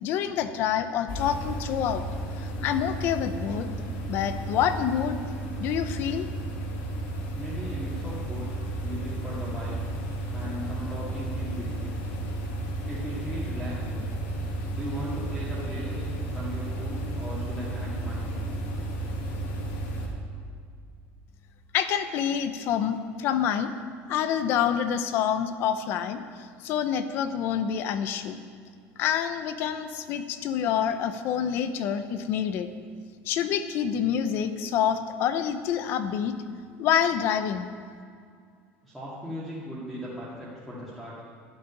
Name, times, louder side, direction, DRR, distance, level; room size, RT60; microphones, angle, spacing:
voice 1, 0.0-2.0 2.4-3.7 4.1-5.2 5.6-6.3 21.7-23.7 24.1-28.4 29.0-32.7 33.3-36.3 36.8-37.7, left 9 dB, 45° left, 10 dB, 0.8 m, -27 dB
sound 1, 1.1-20.1, right 1 dB, 70° left, 2.5 m, -33 dB
voice 2, 7.3-9.8 10.3-12.0 12.9-14.1 14.7-18.3 38.8-41.2, equal, ahead, -11 dB, 2.3 m, -38 dB
11.5 x 7.5 x 9.9 m, 2.2 s
cardioid pair, 175°, 5 cm